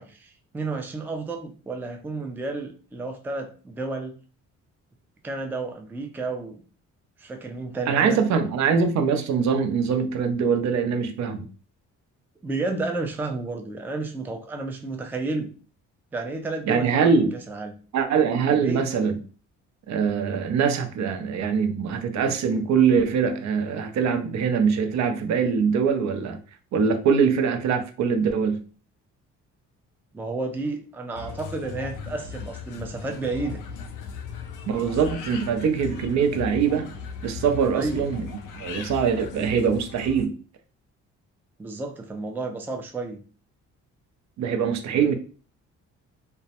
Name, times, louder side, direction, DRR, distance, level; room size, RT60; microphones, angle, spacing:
voice 1, 0.0-4.1 5.2-6.6 7.2-8.2 12.4-15.5 16.1-17.8 18.5-18.8 30.1-33.6 37.7-38.1 41.6-43.2 44.9-45.1, right 3 dB, 5° right, 0.3 m, -31 dB
voice 2, 7.9-11.5 16.7-17.3 17.9-19.2 19.9-26.4 26.7-28.6 34.7-36.9 37.2-38.3 38.6-40.3 44.4-45.1, right 6 dB, 65° right, 0.5 m, -23 dB
sound 1, 31.1-40.3, left 6 dB, 85° left, 0.5 m, -37 dB
2.2 x 2.0 x 2.8 m
cardioid pair, 90°, 30 cm